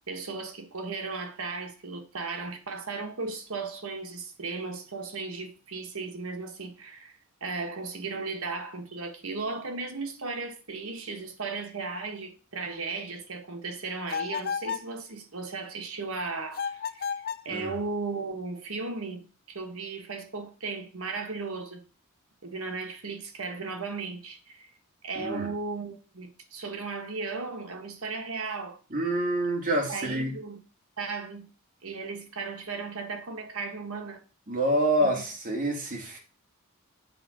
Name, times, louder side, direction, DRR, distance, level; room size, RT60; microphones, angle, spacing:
voice 1, 0.1-7.1 7.4-17.1 17.4-21.8 22.4-24.7 25.0-28.8 29.9-30.7 31.0-31.5 31.8-34.2 35.0-35.1, right 4 dB, 75° right, 1.4 m, -36 dB
sound 1, 14.1-14.9 16.5-17.5, left 7 dB, 45° left, 0.4 m, -32 dB
voice 2, 25.2-25.5 28.9-30.3 34.5-36.2, right 1 dB, 40° right, 2.3 m, -27 dB
7.8 x 3.7 x 6.2 m
head